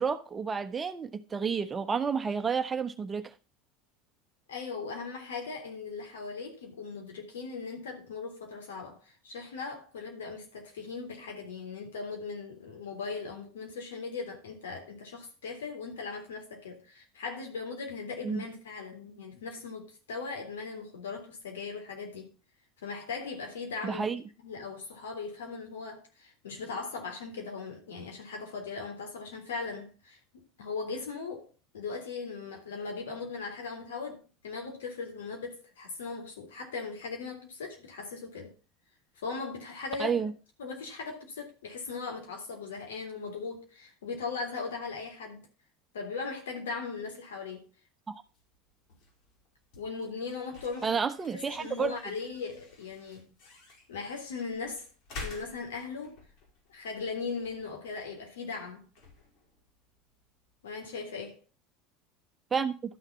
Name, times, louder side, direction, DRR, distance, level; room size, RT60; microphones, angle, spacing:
voice 1, 0.0-3.3 18.2-18.4 23.8-24.2 40.0-40.3 48.1-48.2 50.8-52.0 62.5-62.8, right 6 dB, 25° right, 1.1 m, -30 dB
voice 2, 4.5-22.3 22.8-24.0 24.4-38.5 39.2-40.3 40.6-45.5 45.9-47.6 49.7-51.0 51.3-53.3 53.9-54.9 55.2-56.2 56.7-58.8 60.6-61.4, left 4 dB, 70° left, 3.4 m, -39 dB
sound 1, 48.3-61.0, left 3 dB, 55° left, 4.5 m, -51 dB
12.5 x 6.5 x 5.5 m
figure-of-eight pair, 75°, 0 cm